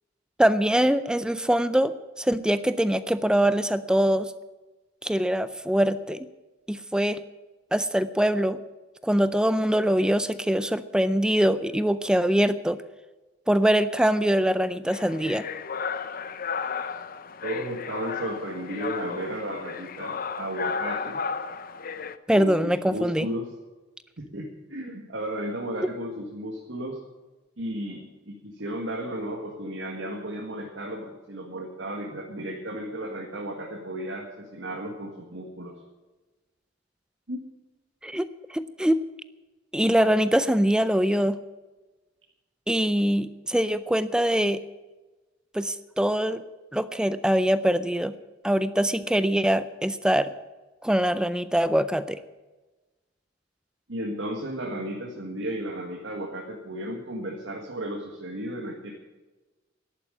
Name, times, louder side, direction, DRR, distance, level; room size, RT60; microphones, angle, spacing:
voice 1, 0.4-4.3 5.0-6.3 6.7-7.2 7.7-8.6 9.0-12.8 13.5-15.5 22.3-23.3 38.0-39.0 39.7-41.4 42.7-44.6 45.5-46.4 46.7-48.1 48.4-50.3 50.8-52.2, equal, 5° right, 14 dB, 0.4 m, -23 dB
sound 1, 14.9-22.2, left 5 dB, 50° left, 0.7 m, -33 dB
voice 2, 17.4-21.2 22.3-23.5 24.2-27.0 27.6-35.8 37.3-37.4 53.9-58.9, right 1 dB, 75° right, 0 dB, 1.8 m, -34 dB
11.5 x 8.7 x 9.9 m, 1.2 s
head